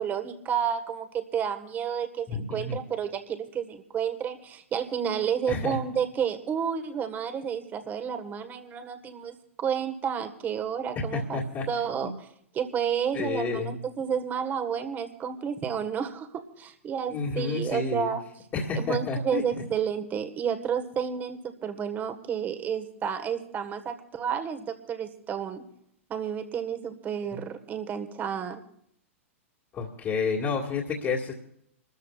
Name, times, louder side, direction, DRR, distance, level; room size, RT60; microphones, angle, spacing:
voice 1, 0.0-12.3 12.5-18.2 18.7-25.6 26.1-28.6, right 7 dB, 25° right, 8 dB, 1.5 m, -31 dB
voice 2, 2.3-2.8 5.5-5.8 11.1-11.7 13.1-13.7 17.1-18.1 18.5-19.6 29.7-31.3, left 4 dB, 25° left, -3 dB, 2.0 m, -30 dB
28.5 x 13.5 x 2.5 m, 0.70 s
figure-of-eight pair, 105°, 7 cm